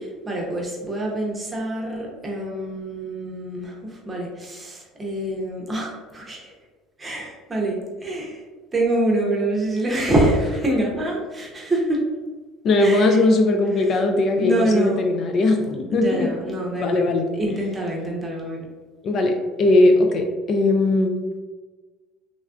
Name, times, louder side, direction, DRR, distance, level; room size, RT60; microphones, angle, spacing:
voice 1, 0.3-6.5 7.0-8.4 8.7-12.1 12.8-13.2 13.8-14.0 14.3-15.0 15.9-18.7, right 1 dB, 20° right, -2 dB, 0.7 m, -25 dB
voice 2, 12.6-16.3 16.8-17.3 19.0-21.1, left 2 dB, 40° left, 3 dB, 0.3 m, -19 dB
3.2 x 2.4 x 2.4 m, 1.3 s
cardioid pair, 125°, 0 cm